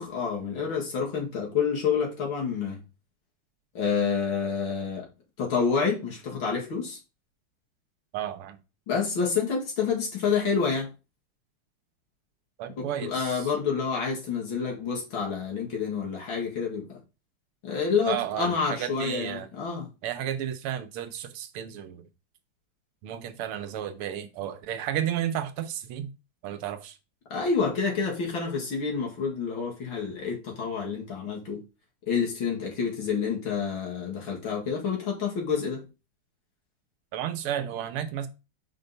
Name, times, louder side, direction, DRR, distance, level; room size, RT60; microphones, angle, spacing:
voice 1, 0.0-2.8 3.7-5.1 5.4-7.0 8.9-10.9 12.8-17.0 17.6-19.9 27.3-31.6 32.1-35.9, left 5 dB, 65° left, 2.6 m, -28 dB
voice 2, 8.1-8.6 12.6-13.5 18.1-19.5 20.0-22.1 23.0-26.1 26.4-27.0 37.1-38.3, right 10 dB, 80° right, 1.6 m, -32 dB
5.2 x 4.1 x 5.4 m
omnidirectional pair, 2.4 m